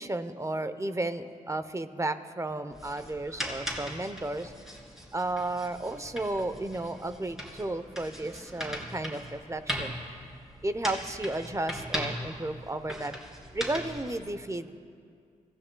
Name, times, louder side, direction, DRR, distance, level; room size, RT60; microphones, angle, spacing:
voice 1, 0.0-4.5 5.1-9.9 10.6-13.1 13.5-14.8, right 2 dB, 20° right, 11 dB, 0.8 m, -33 dB
sound 1, 2.7-14.2, equal, 5° right, 3.4 m, -39 dB
22.5 x 15.5 x 2.3 m, 2.2 s
cardioid pair, 55°, 15 cm